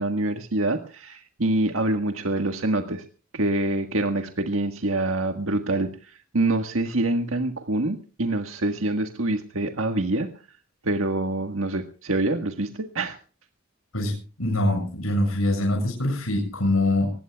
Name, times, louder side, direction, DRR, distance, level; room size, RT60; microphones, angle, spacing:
voice 1, 0.0-3.0 3.3-10.3 10.8-13.2, right 2 dB, 70° right, 6 dB, 1.7 m, -26 dB
voice 2, 13.9-17.1, left 1 dB, 90° left, 1 dB, 7.2 m, -24 dB
25.0 x 19.5 x 2.4 m, 0.38 s
head